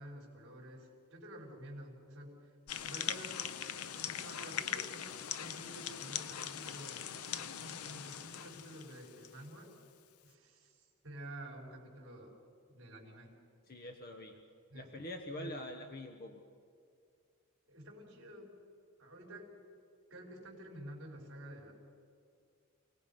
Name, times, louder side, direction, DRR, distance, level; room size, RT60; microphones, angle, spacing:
voice 1, 0.0-2.5 2.8-3.5 3.9-5.1 5.4-9.7 10.2-12.3 12.7-13.3 14.7-14.9 15.3-15.5 17.7-18.5 19.0-19.5 20.1-21.7, right 1 dB, 55° right, -3 dB, 4.6 m, -50 dB
sound 1, 2.7-9.5, left 9 dB, 85° left, 0.7 m, -41 dB
voice 2, 13.7-14.4 14.7-16.4, left 1 dB, 45° left, 5 dB, 1.2 m, -45 dB
28.5 x 18.5 x 5.6 m, 2.3 s
head